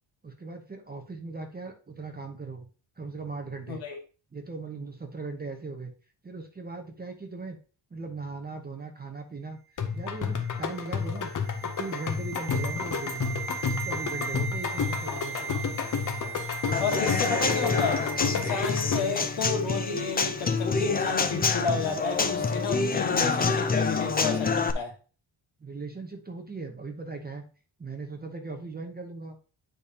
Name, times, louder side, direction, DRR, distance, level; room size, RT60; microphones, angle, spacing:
voice 1, 0.2-2.7 3.0-3.8 4.3-5.9 6.2-7.6 7.9-9.6 9.9-11.3 11.6-13.3 13.7-15.6 25.6-27.4 27.8-29.4, right 3 dB, 20° right, 4 dB, 0.7 m, -38 dB
voice 2, 3.7-4.0 16.8-18.0 18.3-24.9, left 4 dB, 70° left, 2 dB, 1.9 m, -31 dB
sound 1, 9.8-19.3, left 5 dB, 40° left, 0.7 m, -31 dB
sound 2, 10.1-19.3 19.6-19.7, right 6 dB, 90° right, 1.1 m, -38 dB
Human voice / Acoustic guitar / Drum, 16.7-24.7, left 4 dB, 20° left, 0.3 m, -27 dB
8.9 x 5.1 x 2.8 m, 0.36 s
wide cardioid pair, 180°, 48 cm